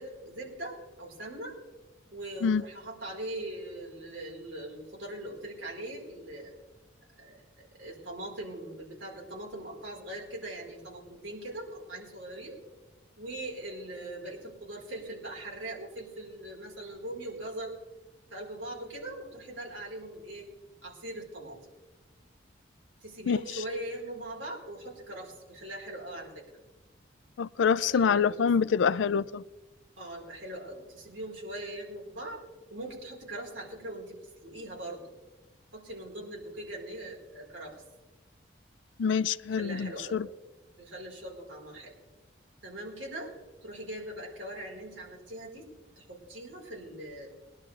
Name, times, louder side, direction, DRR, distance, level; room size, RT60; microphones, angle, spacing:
voice 1, 0.0-1.5 2.1-6.5 7.2-12.6 13.2-17.8 18.3-20.5 20.8-21.6 23.0-26.4 27.9-28.4 30.0-32.4 32.7-35.1 35.7-37.8 39.5-40.2 40.8-41.9 42.6-43.3 43.6-45.7 46.0-47.3, right 1 dB, 85° right, 4.3 m, -41 dB
voice 2, 27.4-29.4 39.0-40.2, left 6 dB, 80° left, 0.4 m, -26 dB
22.0 x 11.0 x 3.3 m
head